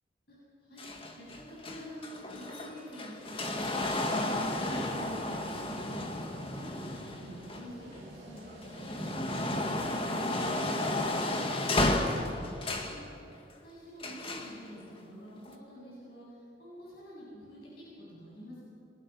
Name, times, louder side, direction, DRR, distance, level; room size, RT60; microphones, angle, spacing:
voice 1, 0.3-0.8 1.1-3.6 3.9-5.7 6.4-8.4 8.8-10.2 10.5-13.0 13.6-18.7, equal, 55° left, -7 dB, 7.9 m, -48 dB
sound 1, 0.8-8.0 8.5-13.0 14.0-14.6 15.4-15.5, left 1 dB, 30° left, 1.9 m, -33 dB
sound 2, 4.1-9.1, equal, 35° right, 7.2 m, -52 dB
29.5 x 22.5 x 6.0 m, 2.7 s
head